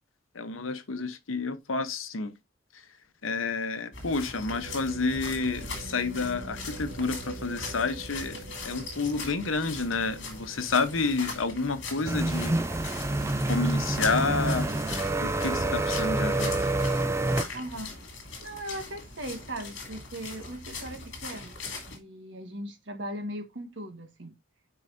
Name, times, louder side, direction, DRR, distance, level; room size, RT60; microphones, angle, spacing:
voice 1, 0.3-2.3 2.7-2.9 3.2-12.6 13.5-14.7 15.0-16.6, left 4 dB, 85° left, 0.9 m, -30 dB
sound 1, 3.9-22.0, left 3 dB, 60° left, 2.9 m, -40 dB
sound 2, 4.5-14.4 14.9-15.0 15.6-16.0, right 3 dB, 90° right, 1.3 m, -47 dB
sound 3, 12.0-17.4, right 2 dB, 15° right, 0.4 m, -27 dB
voice 2, 17.5-18.0 18.4-24.3, right 1 dB, 65° right, 1.5 m, -39 dB
10.0 x 4.8 x 2.6 m
head